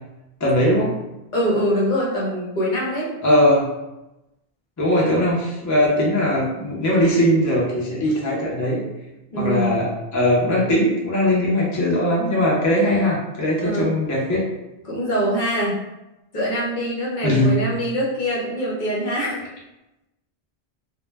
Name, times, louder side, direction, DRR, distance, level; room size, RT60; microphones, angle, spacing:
voice 1, 0.4-0.9 3.2-3.7 4.8-8.8 9.4-14.4 17.2-17.5, left 1 dB, 25° left, -5 dB, 0.4 m, -20 dB
voice 2, 1.3-3.1 9.3-9.8 13.6-13.9 14.8-15.8 16.3-19.4, equal, 55° left, -5 dB, 0.8 m, -23 dB
2.1 x 2.1 x 3.2 m, 0.96 s
omnidirectional pair, 1.1 m